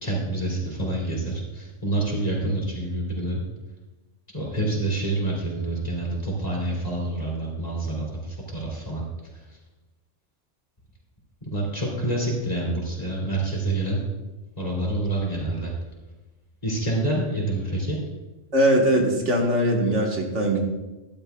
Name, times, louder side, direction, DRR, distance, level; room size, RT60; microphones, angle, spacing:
voice 1, 0.0-3.4 4.3-9.0 11.4-14.0 14.6-15.7 16.6-18.0, right 2 dB, 30° left, -3 dB, 2.9 m, -27 dB
voice 2, 18.5-20.6, right 1 dB, 70° right, 0 dB, 1.8 m, -21 dB
12.5 x 12.0 x 2.3 m, 1.1 s
omnidirectional pair, 1.3 m